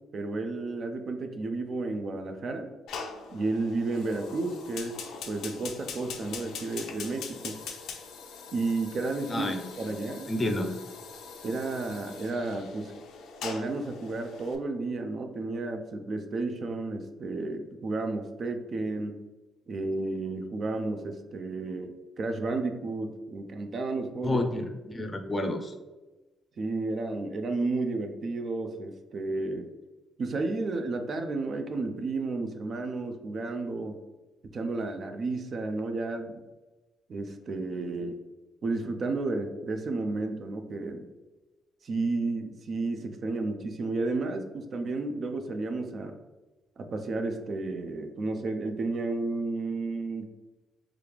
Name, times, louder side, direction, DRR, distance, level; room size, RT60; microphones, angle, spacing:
voice 1, 0.1-2.7 3.3-5.0 5.3-7.6 8.5-10.3 11.4-12.9 13.4-19.2 19.7-24.4 24.9-25.0 26.6-29.7 30.2-34.0 34.5-36.4 37.1-38.2 38.6-41.1 41.8-46.1 46.8-50.3, right 3 dB, 50° right, 6 dB, 0.4 m, -32 dB
Fire, 2.9-14.6, left 5 dB, 85° left, 0.4 m, -42 dB
voice 2, 9.3-9.6 10.3-10.7 24.2-25.7, left 1 dB, 25° left, 5 dB, 0.5 m, -29 dB
3.1 x 2.4 x 3.4 m, 1.2 s
cardioid pair, 90°, 0 cm